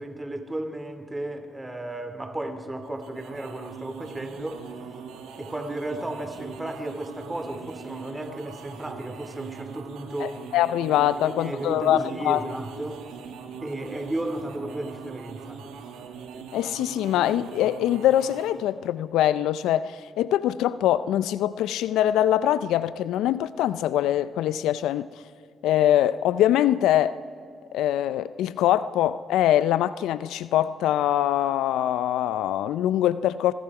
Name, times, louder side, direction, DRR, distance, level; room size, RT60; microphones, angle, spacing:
voice 1, 0.0-5.0 5.4-10.4 11.2-13.1 13.6-15.6, right 1 dB, 15° right, 2.4 m, -34 dB
sound 1, 2.8-18.7, right 6 dB, 85° right, 1.9 m, -41 dB
voice 2, 10.2-12.4 16.5-25.1 25.6-27.2 27.7-33.5, left 12 dB, 85° left, 0.4 m, -23 dB
26.5 x 21.0 x 4.8 m
supercardioid pair, 55°, 0 cm